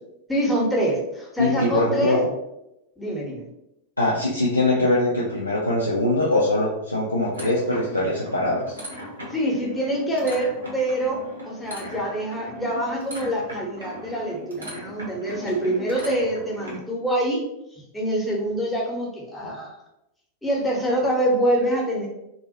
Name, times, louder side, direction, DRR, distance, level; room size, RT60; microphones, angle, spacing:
voice 1, 0.3-2.2 3.0-3.4 9.3-17.4 17.9-19.7 20.4-22.1, right 1 dB, 5° left, -3 dB, 0.7 m, -25 dB
voice 2, 1.4-2.3 4.0-8.8, left 1 dB, 85° left, -6 dB, 0.4 m, -22 dB
sound 1, 7.3-16.8, left 1 dB, 75° right, 0.6 m, -38 dB
2.2 x 2.1 x 2.7 m, 0.84 s
figure-of-eight pair, 90°, 0 cm